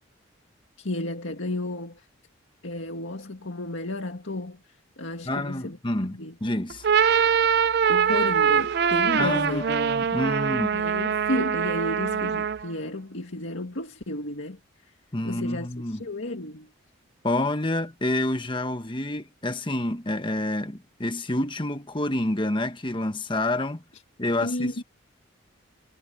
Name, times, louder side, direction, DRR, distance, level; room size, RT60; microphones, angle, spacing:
voice 1, 0.8-2.1 2.6-6.4 7.9-9.6 10.5-14.6 14.8-14.9 15.2-16.7 24.4-24.8, left 1 dB, 70° left, 2.0 m, -33 dB
voice 2, 5.2-6.8 9.2-10.8 15.1-16.0 17.2-23.8 24.2-24.8, left 1 dB, 25° left, 1.2 m, -28 dB
sound 1, 6.7-12.7, right 7 dB, 50° right, 0.4 m, -23 dB
head